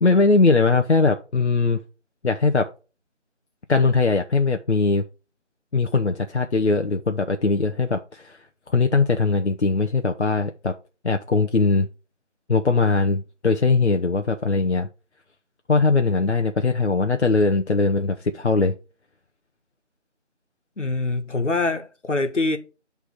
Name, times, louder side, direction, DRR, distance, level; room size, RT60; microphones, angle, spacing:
voice 1, 0.0-1.8 2.2-2.7 3.7-5.0 5.7-8.4 8.7-10.8 11.0-11.9 12.5-14.9 15.7-18.7, left 3 dB, 65° left, 0.7 m, -20 dB
voice 2, 20.8-22.6, left 3 dB, 85° left, 1.4 m, -24 dB
8.1 x 3.4 x 4.8 m
figure-of-eight pair, 180°, 36 cm